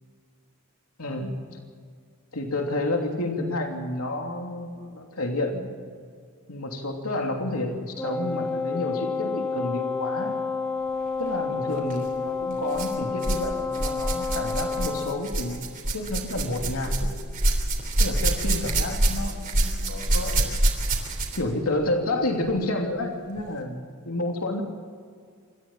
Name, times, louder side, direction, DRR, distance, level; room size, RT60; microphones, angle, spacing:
voice 1, 1.0-1.4 2.3-5.7 6.5-10.4 11.2-15.7 15.9-17.1 18.0-20.5 21.3-24.6, left 2 dB, 80° left, 2 dB, 2.9 m, -30 dB
Wind instrument woodwind instrument, 8.0-15.3, left 4 dB, 10° left, 2.7 m, -29 dB
sound 1, 11.8-12.0 12.7-13.5 13.7-21.5 22.5-22.6 23.4-23.5, right 1 dB, 40° right, 3.3 m, -26 dB
27.5 x 14.0 x 7.4 m, 2.1 s
head